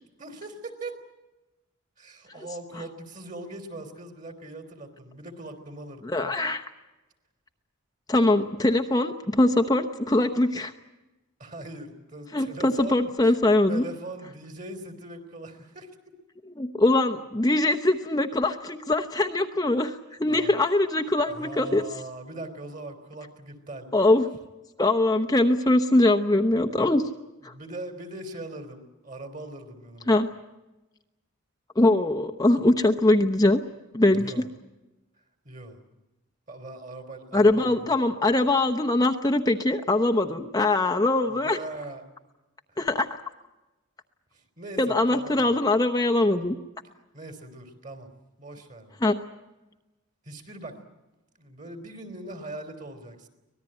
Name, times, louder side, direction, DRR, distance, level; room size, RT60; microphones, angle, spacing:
voice 1, 0.2-1.0 2.0-6.1 11.4-13.4 13.7-16.2 20.3-20.5 21.3-23.9 27.5-30.2 34.1-34.5 35.5-35.8 36.5-38.0 41.3-42.0 42.7-42.8 44.3-45.6 47.1-48.1 48.4-49.0 50.3-50.8 51.3-53.3, right 2 dB, 35° right, 7 dB, 3.5 m, -40 dB
voice 2, 6.0-6.6 8.1-10.7 12.3-13.9 16.6-21.8 23.9-24.3 24.8-27.0 27.4-27.5 30.1-30.3 31.8-33.6 33.9-34.3 37.3-41.6 42.8-43.1 44.8-46.6 49.0-49.2, left 2 dB, 15° left, 5 dB, 0.8 m, -22 dB
25.0 x 19.0 x 8.9 m, 1.1 s
head